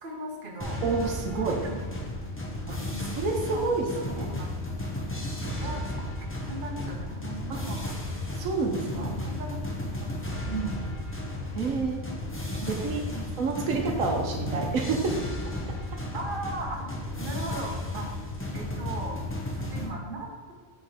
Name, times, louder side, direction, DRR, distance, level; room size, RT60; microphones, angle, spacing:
voice 1, 0.0-0.8 1.3-1.9 2.9-3.1 3.4-3.7 4.1-4.5 5.6-6.0 6.4-8.0 8.9-9.6 10.0-10.9 12.6-12.7 13.1-13.3 13.7-13.8 16.1-16.9 17.2-19.2 19.5-20.5, right 2 dB, 40° right, 0 dB, 1.3 m, -38 dB
sound 1, 0.6-19.9, left 1 dB, 10° left, 0.8 m, -34 dB
voice 2, 0.8-1.6 2.7-2.8 3.2-4.3 7.5-7.6 8.3-9.1 11.5-12.1 12.6-13.0 13.4-15.1, right 4 dB, 80° right, 2 dB, 1.3 m, -28 dB
7.8 x 3.9 x 5.0 m, 1.5 s
omnidirectional pair, 1.4 m